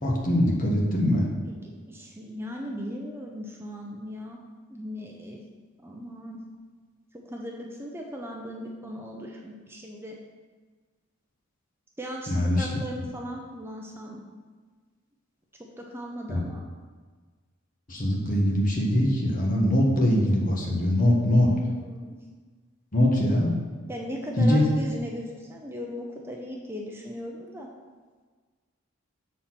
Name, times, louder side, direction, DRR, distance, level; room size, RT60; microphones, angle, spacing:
voice 1, 0.0-1.3 12.3-12.7 16.3-16.4 17.9-21.5 22.9-23.6 24.4-24.7, left 1 dB, 40° left, -2 dB, 1.4 m, -22 dB
voice 2, 1.5-4.4 4.7-5.4 5.8-6.4 7.1-10.2 12.0-14.2 15.8-16.6 21.6-22.2 23.9-27.7, equal, 10° right, -1 dB, 0.6 m, -37 dB
7.1 x 4.3 x 5.8 m, 1.5 s
head